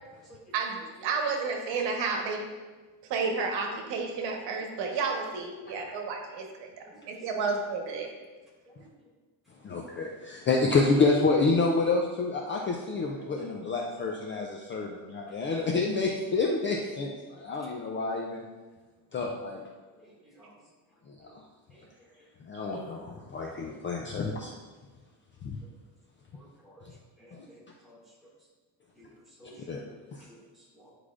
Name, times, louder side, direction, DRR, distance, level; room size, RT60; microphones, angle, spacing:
voice 1, 0.5-2.5 3.1-8.1 22.5-22.9, right 4 dB, 80° right, 2 dB, 1.2 m, -31 dB
voice 2, 9.6-18.4 19.1-19.6 21.1-21.4 22.4-24.5 25.4-25.6 29.7-29.8 30.1-30.2, left 3 dB, 30° left, 0 dB, 0.4 m, -28 dB
voice 3, 13.2-13.5 15.3-15.6 17.9-18.0 20.0-20.1 20.4-20.5 21.2-21.3 21.7-21.9 26.3-26.9 27.2-28.0 29.0-29.1 29.4-29.7 30.3-30.4 30.7-30.9, equal, ahead, -8 dB, 2.0 m, -53 dB
10.0 x 4.8 x 2.5 m, 1.3 s
cardioid pair, 165°, 43 cm